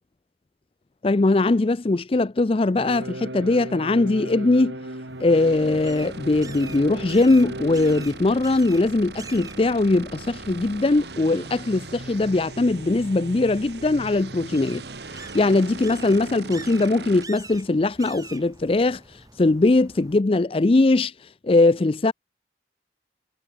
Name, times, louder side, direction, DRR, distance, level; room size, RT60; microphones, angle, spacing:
voice 1, 1.0-4.8 5.2-14.8 15.3-19.0 19.4-21.1 21.4-22.1, left 2 dB, 30° left, 0.4 m, -20 dB
sound 1, 2.7-8.1, right 1 dB, 85° right, 7.2 m, -36 dB
sound 2, 5.1-20.2, right 3 dB, 20° right, 5.9 m, -46 dB
sound 3, 5.3-17.3, right 3 dB, 70° right, 2.2 m, -39 dB
head